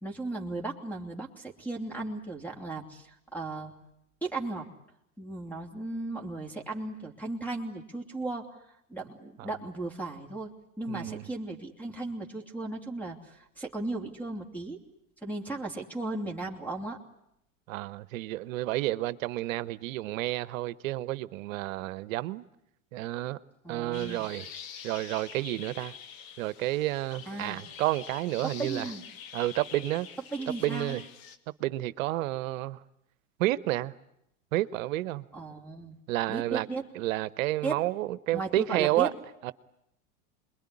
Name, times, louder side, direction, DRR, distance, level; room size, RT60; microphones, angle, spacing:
voice 1, 0.0-3.7 4.2-4.7 5.2-8.5 8.9-14.8 15.2-17.0 23.6-24.3 27.3-27.6 28.4-29.0 30.3-30.9 35.3-36.0 36.3-36.8 37.6-37.8 38.3-39.1, right 2 dB, 5° left, 3.0 m, -36 dB
voice 2, 10.9-11.2 17.7-22.4 22.9-23.4 23.7-24.5 24.8-26.0 26.4-28.8 29.3-30.1 30.6-31.0 31.6-32.8 33.4-33.9 34.5-35.2 36.1-36.7 36.9-39.1 39.4-39.5, right 16 dB, 65° right, 1.1 m, -30 dB
sound 1, 23.9-31.4, left 8 dB, 65° left, 2.2 m, -46 dB
27.0 x 22.0 x 10.0 m
hypercardioid pair, 105°, 42 cm